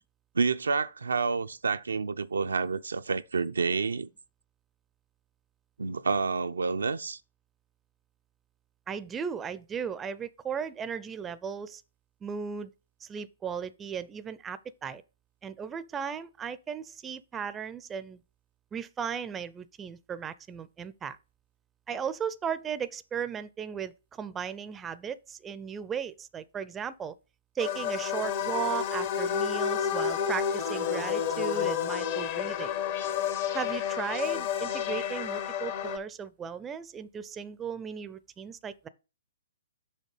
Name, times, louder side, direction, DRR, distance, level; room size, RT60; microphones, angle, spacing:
voice 1, 0.4-4.1 5.8-7.2, right 4 dB, 80° right, 0.4 m, -29 dB
voice 2, 8.9-11.8 12.2-12.7 13.0-15.0 15.4-18.2 18.7-21.2 21.9-27.1 27.6-32.7 33.5-38.9, right 7 dB, 15° right, 0.4 m, -36 dB
sound 1, 27.6-36.0, left 8 dB, 45° left, 0.8 m, -30 dB
6.4 x 3.3 x 5.4 m
hypercardioid pair, 130°, 0 cm